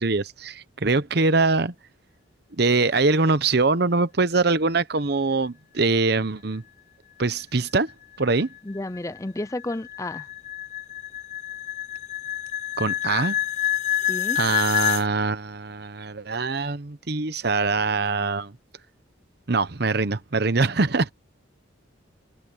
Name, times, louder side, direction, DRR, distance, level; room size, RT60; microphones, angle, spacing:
voice 1, 0.0-1.7 2.6-6.6 7.2-7.9 8.2-8.5 12.8-13.4 14.4-18.5 19.5-21.1, right 3 dB, 55° right, 0.9 m, -23 dB
sound 1, 7.9-15.1, left 11 dB, 35° left, 0.9 m, -28 dB
voice 2, 8.6-10.3 14.0-14.5, left 1 dB, 15° left, 0.5 m, -32 dB
head